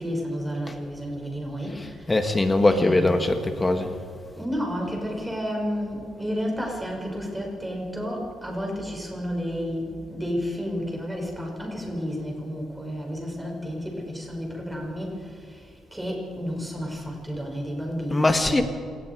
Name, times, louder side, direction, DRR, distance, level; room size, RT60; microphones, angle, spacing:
voice 1, 0.0-2.1 2.7-3.3 4.3-18.6, equal, 10° right, -1 dB, 6.4 m, -31 dB
voice 2, 1.8-3.9 18.1-18.6, left 2 dB, 20° left, 6 dB, 2.0 m, -22 dB
27.0 x 19.0 x 5.0 m, 2.1 s
cardioid pair, 90°, 0 cm